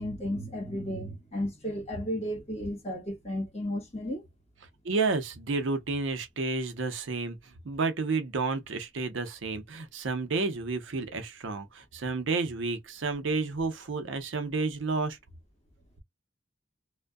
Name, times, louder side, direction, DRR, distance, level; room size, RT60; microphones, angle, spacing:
voice 1, 0.0-4.2, equal, 35° left, 1.2 m, -33 dB
voice 2, 4.8-15.2, right 3 dB, 75° right, 0.6 m, -31 dB
2.6 x 2.1 x 2.2 m
head